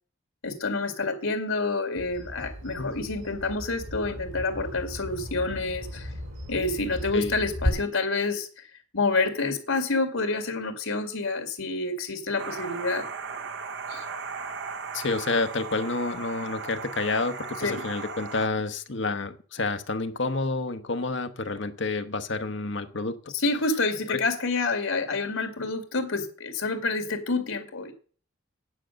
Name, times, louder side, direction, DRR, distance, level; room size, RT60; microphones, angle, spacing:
voice 1, 0.4-6.1 6.5-8.7 8.9-13.1 13.9-14.0 17.6-17.8 23.3-27.9, left 3 dB, 80° left, 7 dB, 2.3 m, -28 dB
Bird vocalization bird call bird song, 2.0-7.7, equal, 85° right, 4.3 m, -35 dB
sound 1, 12.4-18.5, right 5 dB, 55° right, 0.8 m, -37 dB
voice 2, 14.9-23.3 24.1-24.2, left 3 dB, 60° left, 8 dB, 1.0 m, -29 dB
9.6 x 7.6 x 6.4 m, 0.41 s
head